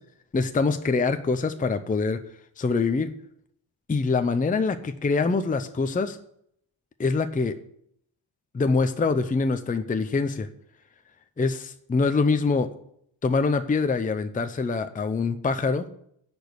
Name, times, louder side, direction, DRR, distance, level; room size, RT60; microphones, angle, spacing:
voice 1, 0.3-2.2 2.6-3.1 3.9-6.2 7.0-7.6 8.5-10.5 11.4-12.7 13.2-15.9, left 4 dB, 20° left, 9 dB, 0.6 m, -24 dB
10.5 x 5.2 x 8.2 m, 0.69 s
wide cardioid pair, 135°, 47 cm